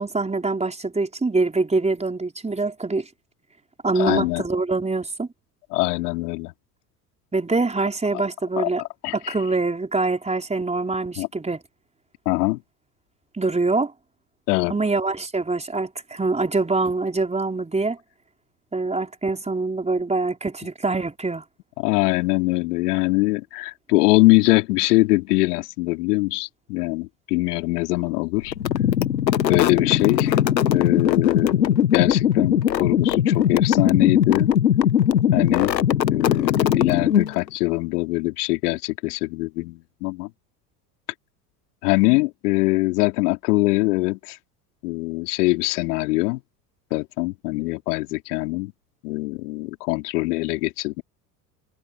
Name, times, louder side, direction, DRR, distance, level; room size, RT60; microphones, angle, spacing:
voice 1, 0.0-3.1 3.8-5.3 7.3-8.8 9.1-11.6 13.3-13.9 14.7-18.0 18.7-21.4, right 3 dB, 15° right, 4.6 m, -24 dB
voice 2, 4.0-4.4 5.7-6.5 8.1-8.2 8.6-9.3 11.2-11.3 12.3-12.6 14.5-14.8 21.8-28.5 29.5-30.4 30.7-34.5 35.3-35.8 36.1-40.3 41.8-44.4 44.8-46.4 46.9-48.7 49.0-51.0, left 23 dB, 65° left, 3.8 m, -23 dB
sound 1, 28.5-37.5, left 9 dB, 85° left, 1.3 m, -20 dB
figure-of-eight pair, 70°, 50 cm